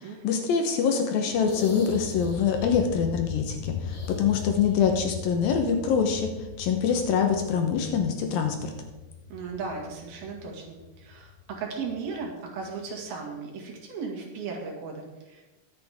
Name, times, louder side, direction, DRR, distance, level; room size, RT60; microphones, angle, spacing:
voice 1, 0.2-6.3 6.6-8.7, left 6 dB, 70° left, 4 dB, 2.6 m, -25 dB
sound 1, 1.3-12.9, left 7 dB, 85° left, 2.7 m, -39 dB
sound 2, 1.3-2.7 3.8-5.0 5.3-5.4 7.0-7.1, left 2 dB, 30° left, 1.9 m, -44 dB
voice 2, 9.3-15.4, right 4 dB, 70° right, 0 dB, 3.9 m, -36 dB
22.0 x 8.2 x 3.6 m, 1.1 s
omnidirectional pair, 4.6 m